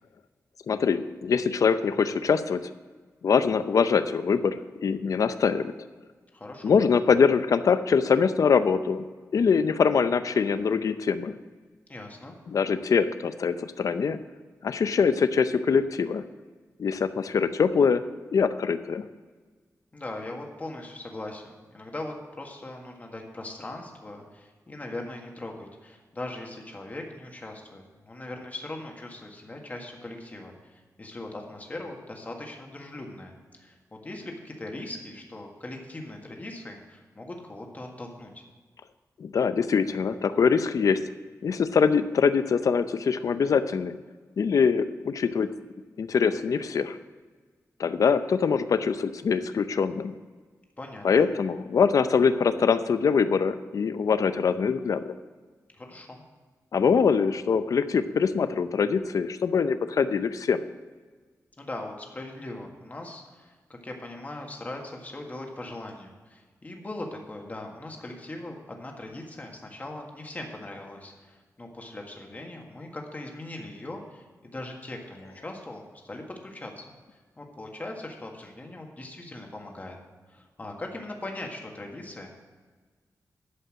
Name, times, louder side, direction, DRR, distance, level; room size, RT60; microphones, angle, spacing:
voice 1, 0.7-2.7 3.2-5.7 6.6-9.1 9.3-11.4 12.5-14.2 14.6-16.2 16.8-18.0 18.3-19.1 39.2-41.0 41.4-44.0 44.4-45.5 46.0-47.0 47.8-50.2 51.0-55.1 56.7-60.6, left 6 dB, 65° left, 11 dB, 0.6 m, -23 dB
voice 2, 6.3-6.7 11.9-12.4 19.9-21.4 21.7-38.4 50.8-51.3 55.8-56.2 61.6-76.8 77.4-80.0 80.3-82.3, left 2 dB, 25° left, 1 dB, 1.7 m, -40 dB
11.5 x 5.5 x 7.5 m, 1.4 s
wide cardioid pair, 145°, 6 cm